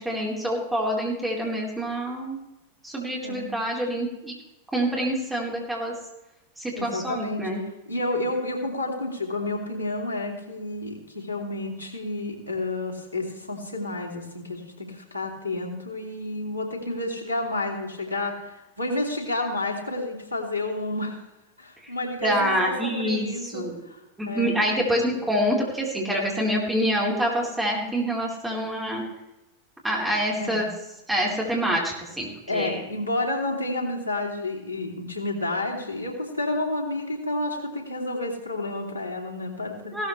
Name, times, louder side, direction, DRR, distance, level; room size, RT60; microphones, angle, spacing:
voice 1, 0.0-2.4 2.8-4.3 4.7-5.9 6.6-7.6 21.8-21.9 22.2-23.3 23.5-23.8 24.2-29.0 29.8-30.7 31.1-32.8 39.9-40.1, equal, 5° right, -3 dB, 4.2 m, -26 dB
voice 2, 3.2-3.6 6.7-7.4 7.9-21.2 21.6-25.1 30.4-30.7 32.5-39.9, left 2 dB, 90° right, -3 dB, 2.9 m, -30 dB
16.5 x 13.5 x 3.3 m, 0.98 s
figure-of-eight pair, 90°, 0 cm